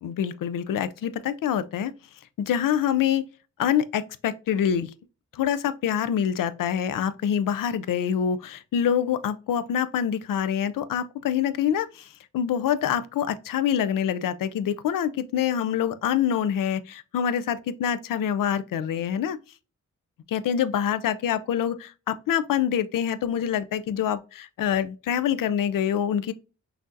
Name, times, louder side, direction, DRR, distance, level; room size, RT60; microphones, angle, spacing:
voice 1, 0.0-1.9 2.4-3.3 3.6-4.9 5.3-12.1 12.3-19.4 20.3-26.3, left 9 dB, 85° left, 0.5 m, -26 dB
5.9 x 2.6 x 2.6 m
wide cardioid pair, 155°, 32 cm